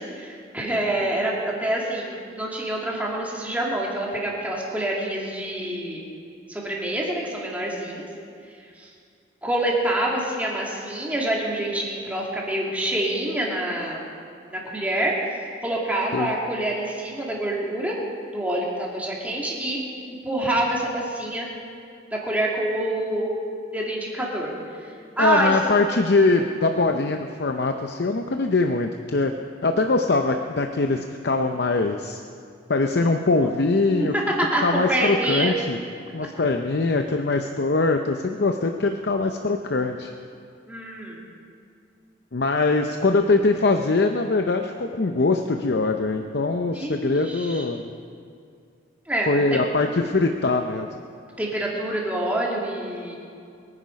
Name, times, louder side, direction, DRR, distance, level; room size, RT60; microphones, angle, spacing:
voice 1, 0.0-6.0 6.5-8.1 8.8-8.9 9.4-14.0 14.5-15.1 15.6-18.0 18.3-19.8 20.1-21.5 22.1-23.3 23.7-24.5 24.8-25.6 33.0-33.1 33.9-34.1 34.4-35.5 40.7-41.2 46.7-47.7 49.1-49.6 51.4-53.1, right 1 dB, 10° right, -4 dB, 2.6 m, -26 dB
voice 2, 25.2-29.3 29.6-32.2 32.7-34.1 34.6-35.8 36.1-40.1 42.3-47.9 49.3-50.9, left 3 dB, 60° left, 5 dB, 0.7 m, -22 dB
23.5 x 9.8 x 5.3 m, 2.4 s
head